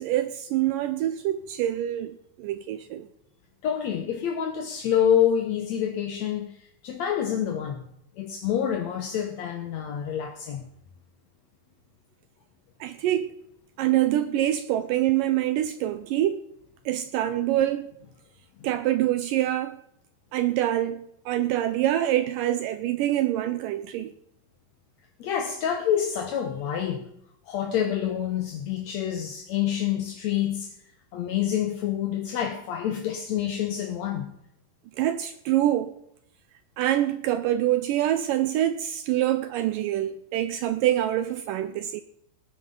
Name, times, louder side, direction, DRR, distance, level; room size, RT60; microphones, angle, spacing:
voice 1, 0.0-3.1 12.8-13.3 13.8-16.4 16.9-17.9 18.6-19.8 20.3-24.1 35.0-35.9 36.8-42.0, right 13 dB, 80° right, 2.0 m, -25 dB
voice 2, 3.6-7.9 8.2-10.7 18.6-18.7 25.2-27.1 27.5-30.7 31.1-34.3, left 9 dB, 65° left, 1.9 m, -27 dB
19.0 x 9.7 x 3.8 m
omnidirectional pair, 4.3 m